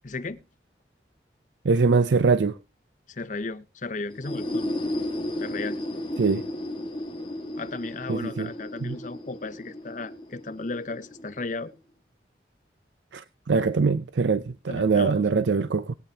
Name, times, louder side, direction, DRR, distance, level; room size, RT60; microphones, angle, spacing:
voice 1, 0.0-0.4 3.1-4.7 5.4-5.8 7.6-11.7 14.7-15.2, left 3 dB, 45° left, 0.8 m, -35 dB
voice 2, 1.6-2.5 6.2-6.4 8.1-8.5 8.8-9.0 13.1-15.9, right 4 dB, 80° right, 0.5 m, -23 dB
sound 1, 4.1-11.7, left 1 dB, 30° left, 1.7 m, -34 dB
21.0 x 8.7 x 2.8 m
head